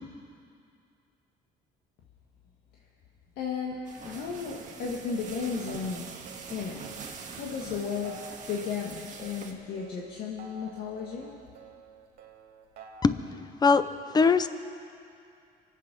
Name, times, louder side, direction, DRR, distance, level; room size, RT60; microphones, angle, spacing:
voice 1, 3.4-6.2 6.5-6.8 7.3-8.2 8.5-11.3, left 6 dB, 75° left, -2 dB, 1.7 m, -34 dB
sound 1, 3.8-9.5, right 5 dB, 45° right, 1.7 m, -44 dB
sound 2, 4.0-13.2, right 5 dB, 65° right, 2.1 m, -50 dB
voice 2, 14.1-14.5, left 5 dB, 25° left, 12 dB, 0.7 m, -20 dB
24.5 x 8.4 x 6.0 m, 2.4 s
cardioid pair, 110°, 17 cm